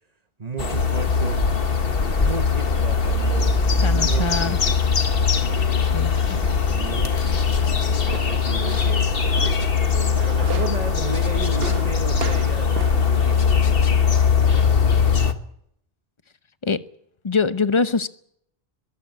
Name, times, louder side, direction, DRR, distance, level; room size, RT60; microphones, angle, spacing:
voice 1, 0.4-1.4 2.2-5.0 5.4-5.9 6.7-15.2, right 4 dB, 40° right, 1.3 m, -35 dB
sound 1, 0.6-15.3, left 5 dB, 65° left, 1.7 m, -20 dB
voice 2, 3.8-4.6 5.8-6.4 16.6-16.8 17.2-18.1, left 4 dB, 30° left, 0.9 m, -24 dB
sound 2, 7.6-13.1, right 5 dB, 70° right, 1.4 m, -34 dB
22.5 x 15.5 x 9.5 m
omnidirectional pair, 1.1 m